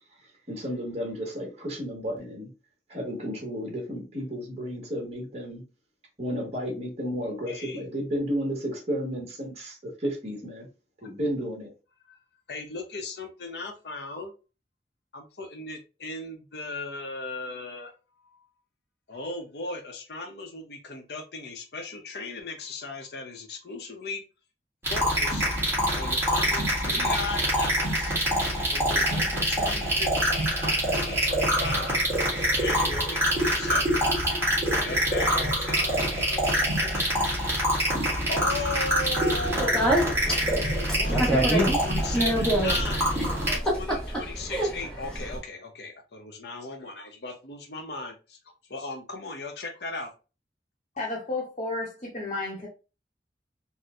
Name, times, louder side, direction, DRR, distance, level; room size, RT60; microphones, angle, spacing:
voice 1, 0.5-2.5 2.9-5.6 6.2-10.7 11.0-11.7, equal, 35° right, 1.2 m, -32 dB
voice 2, 7.5-7.8 11.0-11.1 12.1-12.2 12.5-14.3 15.1-17.9 18.2-18.5 19.1-24.2 24.9-25.4 25.9-28.2 28.7-32.0 32.4-34.1 34.8-37.1 37.5-39.8 40.2-41.3 41.8-43.1 43.7-48.4 48.7-50.1, left 3 dB, 65° left, 0.7 m, -37 dB
sound 1, 24.8-43.6, equal, 15° right, 1.5 m, -25 dB
Speech, 39.3-45.4, right 1 dB, 5° left, 0.9 m, -27 dB
voice 3, 51.0-52.7, left 2 dB, 40° left, 0.8 m, -32 dB
4.2 x 2.1 x 2.3 m
head